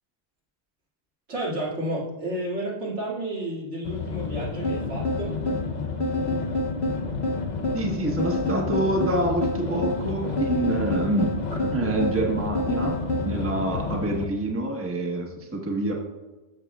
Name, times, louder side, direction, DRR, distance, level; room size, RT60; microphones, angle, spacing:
voice 1, 1.3-5.3, right 1 dB, 80° right, -6 dB, 2.5 m, -31 dB
sound 1, 3.8-14.3, left 5 dB, 45° left, 0.7 m, -31 dB
sound 2, 4.6-13.3, left 1 dB, 65° left, 1.2 m, -29 dB
voice 2, 7.7-11.3 11.7-13.0 13.2-15.9, right 1 dB, 15° right, 0 dB, 1.0 m, -26 dB
13.5 x 5.9 x 2.3 m, 1.1 s
omnidirectional pair, 1.2 m